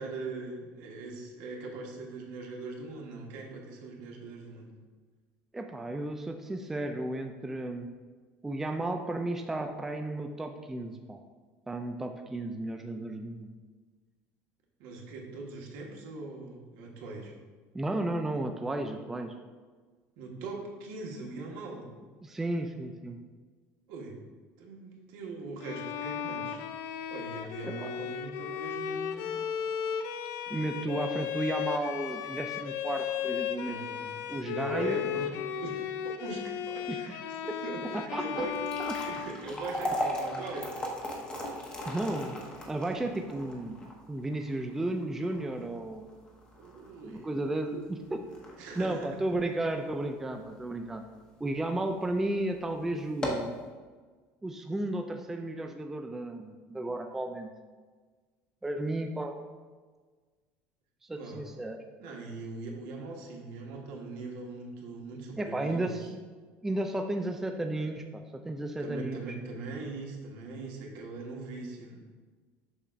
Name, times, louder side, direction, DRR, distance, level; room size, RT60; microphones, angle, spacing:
voice 1, 0.0-4.7 14.8-17.3 20.2-21.9 23.9-24.2 24.6-26.6 27.1-29.4 30.5-31.1 33.6-34.1 34.4-38.6 38.9-40.7 46.6-47.3 48.6-49.2 61.2-61.4 62.0-65.9 68.8-72.1, right 3 dB, 70° right, 0 dB, 1.3 m, -41 dB
voice 2, 5.5-7.9 8.4-11.2 11.7-13.5 17.7-19.3 22.2-23.2 27.6-27.9 30.5-33.8 34.3-35.0 36.9-37.0 37.9-38.5 41.9-42.4 42.7-46.1 47.1-48.2 48.6-51.0 51.4-53.5 54.4-57.5 58.6-59.4 61.1-61.8 65.4-66.0 66.6-69.3, right 1 dB, 5° right, 5 dB, 0.3 m, -33 dB
Bowed string instrument, 25.6-39.9, left 9 dB, 65° left, 0.4 m, -35 dB
sound 1, 38.4-50.7 51.2-51.3 52.0-52.2 52.5-52.6 53.0-53.6, left 1 dB, 20° left, 0.9 m, -38 dB
6.9 x 2.5 x 5.5 m, 1.4 s
cardioid pair, 150°, 5 cm